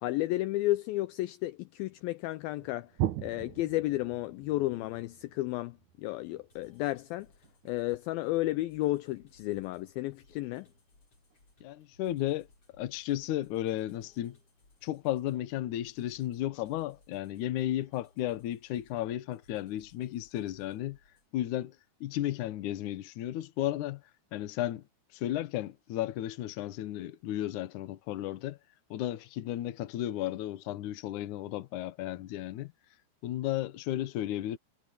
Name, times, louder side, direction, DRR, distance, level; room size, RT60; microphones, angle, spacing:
voice 1, 0.0-2.9 3.2-7.3 7.7-10.7, left 17 dB, 85° left, 2.1 m, -32 dB
sound 1, 2.6-8.2 10.3-10.8 11.3-11.4 12.1-12.4, right 12 dB, 75° right, 1.8 m, -40 dB
sound 2, 6.5-21.3, left 2 dB, 35° left, 8.6 m, -65 dB
voice 2, 11.6-12.5 12.8-14.4 14.8-21.0 21.3-21.8 22.0-24.0 24.3-24.8 25.1-28.6 28.9-32.7 33.2-34.6, left 13 dB, 70° left, 2.0 m, -34 dB
omnidirectional pair, 4.8 m